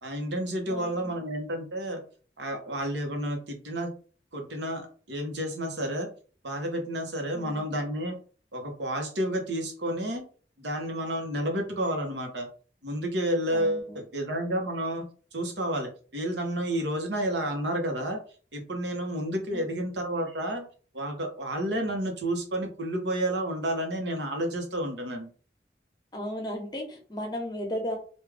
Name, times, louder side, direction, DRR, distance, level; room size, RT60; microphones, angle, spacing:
voice 1, 0.0-2.0 2.4-3.9 4.3-6.1 6.4-8.1 8.5-10.2 10.6-12.5 12.8-15.0 15.3-18.2 18.5-20.7 20.9-25.3, right 1 dB, 80° right, 3 dB, 1.0 m, -30 dB
voice 2, 0.7-1.2 7.3-7.6 13.5-14.0 19.5-19.6 26.1-28.0, equal, 25° left, 2 dB, 0.9 m, -35 dB
3.5 x 2.5 x 3.4 m, 0.40 s
head